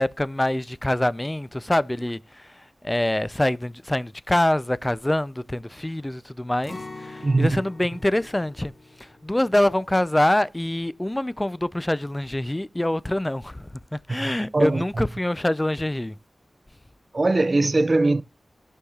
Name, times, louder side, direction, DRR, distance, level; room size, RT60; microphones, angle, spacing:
voice 1, 0.0-2.5 2.8-8.7 9.0-16.2, left 1 dB, 15° left, 0.4 m, -25 dB
Acoustic guitar, 6.6-12.5 12.8-13.0 13.5-14.0, left 2 dB, 50° left, 1.2 m, -45 dB
voice 2, 7.2-7.6 14.2-14.8 17.1-18.2, right 2 dB, 40° right, 0.5 m, -21 dB
17.5 x 6.4 x 2.4 m
wide cardioid pair, 80°, 0 cm